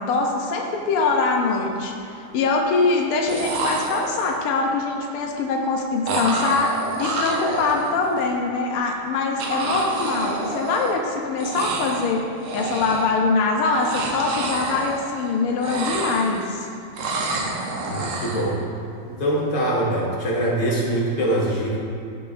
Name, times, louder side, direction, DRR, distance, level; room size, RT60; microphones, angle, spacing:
voice 1, 0.0-6.7 7.0-12.2 12.5-16.7, left 3 dB, 90° left, 1 dB, 1.2 m, -23 dB
sound 1, 0.8-1.0 1.4-2.0 3.0-3.1 3.3-4.5 6.1-8.3 9.4-11.1 11.4-12.1 12.4-13.2 13.6-15.3 15.6-16.6 17.0-18.5, right 3 dB, 70° right, 1.2 m, -28 dB
voice 2, 17.9-18.6 19.0-21.8, right 1 dB, 45° left, -4 dB, 1.9 m, -23 dB
15.0 x 6.0 x 2.5 m, 2.5 s
omnidirectional pair, 3.3 m